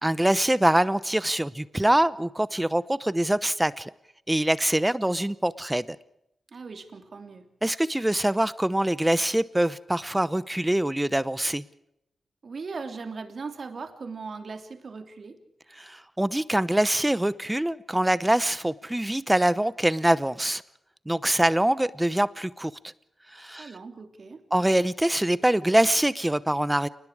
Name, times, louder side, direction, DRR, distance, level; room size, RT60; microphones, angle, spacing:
voice 1, 0.0-3.9 4.3-5.9 7.6-11.6 15.8-20.6 21.1-22.7 23.3-23.7 24.5-26.9, right 1 dB, 10° right, 0.8 m, -24 dB
voice 2, 6.5-7.4 12.4-15.4 23.6-24.4, right 4 dB, 55° right, 3.3 m, -38 dB
29.0 x 20.5 x 4.9 m
cardioid pair, 85°, 0 cm